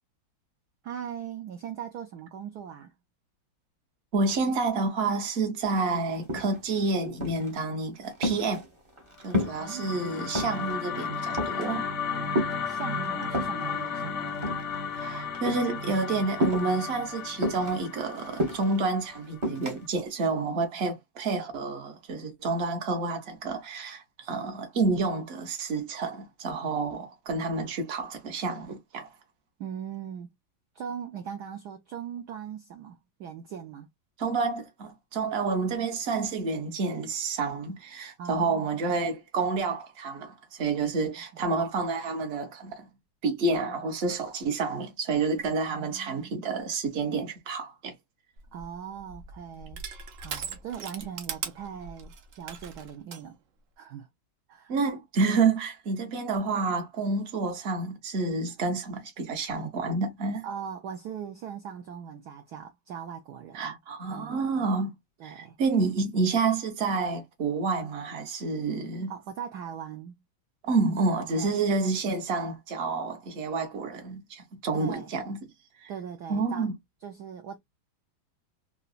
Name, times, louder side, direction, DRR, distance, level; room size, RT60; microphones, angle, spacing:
voice 1, 0.8-2.9 9.6-10.0 12.6-14.4 29.6-30.3 30.7-33.9 38.2-38.6 45.6-46.4 48.5-49.8 50.2-53.4 53.8-54.1 54.5-54.8 60.4-63.8 64.1-64.7 65.2-65.6 69.1-70.1 71.3-71.5 74.7-75.1 75.9-76.7 77.0-77.6, right 8 dB, 70° right, 1.0 m, -40 dB
voice 2, 4.1-8.6 9.2-11.9 14.9-29.1 34.2-42.9 43.2-47.9 54.7-60.4 63.5-64.9 65.2-69.1 70.6-75.4 75.8-75.9 76.3-76.7, right 4 dB, 40° right, 1.0 m, -29 dB
sound 1, 5.8-5.9 6.1-6.8 7.2-7.6 7.9-9.7 10.0-10.8 11.1-11.7 12.3-13.7 14.3-15.1 15.3-15.7 16.4-16.8 17.4-18.8 19.4-19.8, equal, 25° right, 0.6 m, -31 dB
sound 2, 9.3-19.6, left 5 dB, 55° left, 0.8 m, -34 dB
Crushing, 48.4-53.2, right 6 dB, 85° right, 0.7 m, -40 dB
3.9 x 2.2 x 2.4 m
omnidirectional pair, 2.2 m